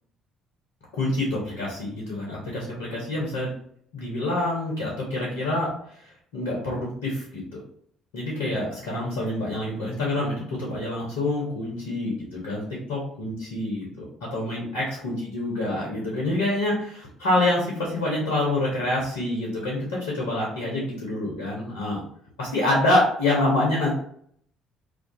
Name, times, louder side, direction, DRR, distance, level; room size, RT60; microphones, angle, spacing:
voice 1, 0.9-3.5 3.9-5.7 6.3-7.6 8.1-12.6 12.9-14.1 14.3-22.0 22.4-23.9, left 1 dB, 70° left, -4 dB, 0.6 m, -26 dB
2.3 x 2.3 x 2.5 m, 0.65 s
figure-of-eight pair, 50°, 0 cm